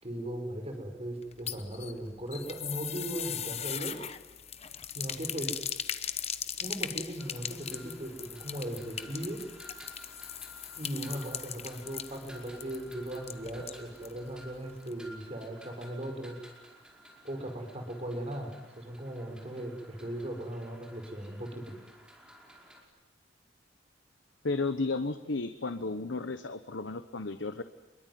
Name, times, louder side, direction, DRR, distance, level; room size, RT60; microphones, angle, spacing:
voice 1, 0.0-4.0 4.9-5.6 6.6-9.4 10.8-16.4 17.2-21.7, right 1 dB, 35° right, 4 dB, 5.2 m, -38 dB
sound 1, 1.2-14.2 14.5-14.6 14.9-15.0, left 9 dB, 35° left, 1.1 m, -39 dB
sound 2, 7.2-22.8, equal, 5° right, 5.2 m, -54 dB
voice 2, 24.4-27.6, left 3 dB, 70° left, 10 dB, 1.1 m, -33 dB
27.0 x 22.5 x 9.4 m, 1.1 s
head